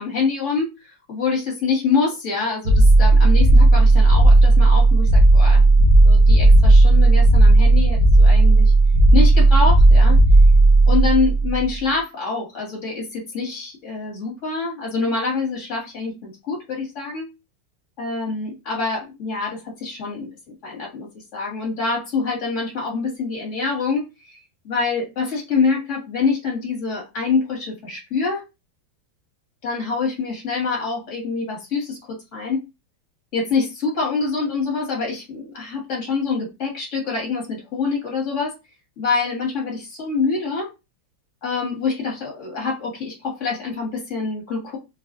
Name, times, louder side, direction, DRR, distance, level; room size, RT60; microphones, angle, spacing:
voice 1, 0.0-5.6 6.0-8.7 9.1-10.2 10.9-17.3 18.0-20.3 20.6-24.4 24.6-28.4 29.6-32.6 33.3-38.5 39.0-40.7 41.4-44.8, left 4 dB, 45° left, -1 dB, 1.4 m, -25 dB
sound 1, 2.6-11.7, right 2 dB, 35° right, 0.8 m, -12 dB
3.2 x 2.3 x 2.5 m, 0.25 s
omnidirectional pair, 2.2 m